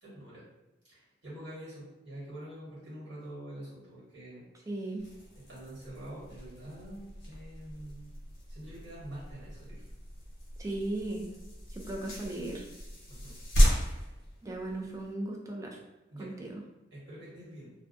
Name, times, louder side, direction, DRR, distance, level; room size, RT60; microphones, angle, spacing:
voice 1, 0.0-0.4 0.9-4.4 5.3-8.2 8.5-9.9 13.1-13.4 16.1-16.4 16.9-17.7, right 1 dB, 75° right, -7 dB, 1.3 m, -46 dB
voice 2, 4.7-5.1 10.6-11.3 11.7-12.7 14.4-15.8 16.2-16.6, right 2 dB, 15° right, -1 dB, 0.4 m, -37 dB
sound 1, 5.0-15.1, equal, 65° left, 0.9 m, -34 dB
2.3 x 2.2 x 2.5 m, 1.0 s
head